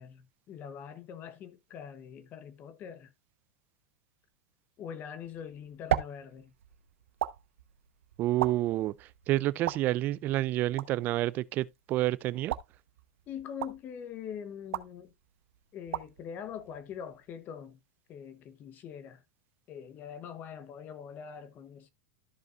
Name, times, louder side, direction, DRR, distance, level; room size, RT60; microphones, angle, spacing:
voice 1, 0.0-3.1 4.8-6.5 13.3-15.1 15.7-17.8 18.1-19.2 19.7-21.9, left 8 dB, 25° left, 0.9 m, -43 dB
sound 1, 5.2-17.4, right 11 dB, 80° right, 0.9 m, -39 dB
voice 2, 8.2-12.6, right 15 dB, 25° right, 0.4 m, -29 dB
13.5 x 5.2 x 2.4 m
supercardioid pair, 160°, 7 cm